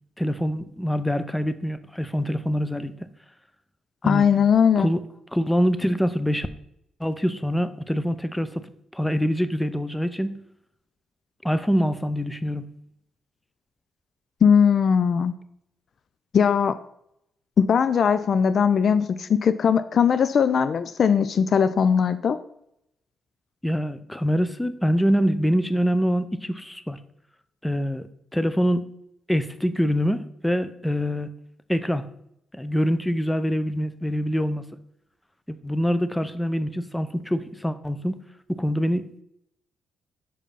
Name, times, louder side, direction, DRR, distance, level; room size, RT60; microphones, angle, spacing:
voice 1, 0.2-3.1 4.0-4.3 4.7-5.0 5.3-6.5 7.0-8.6 8.9-10.4 11.4-12.7 23.6-27.0 27.6-28.9 29.3-31.3 31.7-32.0 32.5-34.6 35.5-38.2 38.5-39.2, equal, 10° left, 12 dB, 0.7 m, -25 dB
voice 2, 4.0-4.9 14.4-15.3 16.3-16.8 17.6-22.4, left 7 dB, 60° left, 12 dB, 0.4 m, -19 dB
5.6 x 5.0 x 5.4 m, 0.74 s
hypercardioid pair, 50°, 0 cm